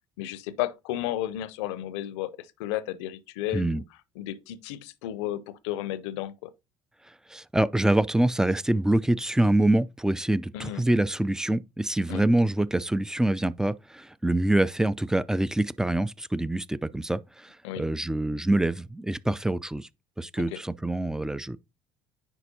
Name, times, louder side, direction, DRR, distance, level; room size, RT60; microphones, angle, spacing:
voice 1, 0.2-3.8 4.2-6.5 10.5-10.8 12.1-12.2 17.6-17.8 20.5-20.6, left 13 dB, 70° left, 0.6 m, -33 dB
voice 2, 3.5-3.8 7.3-19.9 20.2-21.6, right 1 dB, 5° right, 0.3 m, -25 dB
9.8 x 4.6 x 2.7 m
hypercardioid pair, 60°, 15 cm